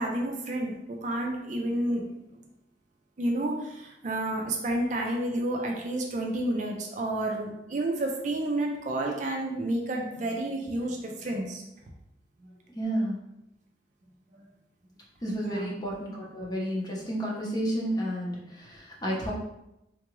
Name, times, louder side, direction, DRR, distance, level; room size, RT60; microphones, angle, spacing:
voice 1, 0.0-2.0 3.2-11.6 15.4-15.7, right 1 dB, 45° right, 1 dB, 0.4 m, -30 dB
voice 2, 12.7-13.2 15.2-19.3, equal, 25° left, -4 dB, 0.7 m, -31 dB
3.7 x 2.3 x 3.0 m, 0.87 s
head